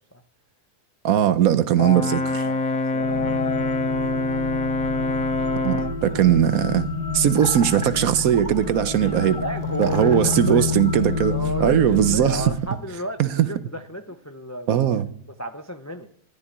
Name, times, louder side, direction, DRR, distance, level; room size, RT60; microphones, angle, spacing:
voice 1, 1.0-2.5 5.6-6.9 7.1-9.4 9.8-12.4 13.2-13.5 14.7-15.1, right 10 dB, 70° right, 1.1 m, -19 dB
Brass instrument, 1.8-6.0, left 2 dB, 65° left, 1.4 m, -25 dB
voice 2, 2.4-3.5 5.4-5.5 6.0-6.4 9.0-10.8 11.3-13.2 13.5-15.0 15.4-16.1, equal, 25° left, 0.3 m, -33 dB
sound 1, 3.0-12.6, left 4 dB, 80° left, 1.9 m, -29 dB
sound 2, 7.4-11.6, right 2 dB, 25° right, 0.8 m, -39 dB
13.0 x 6.7 x 9.4 m
omnidirectional pair, 1.6 m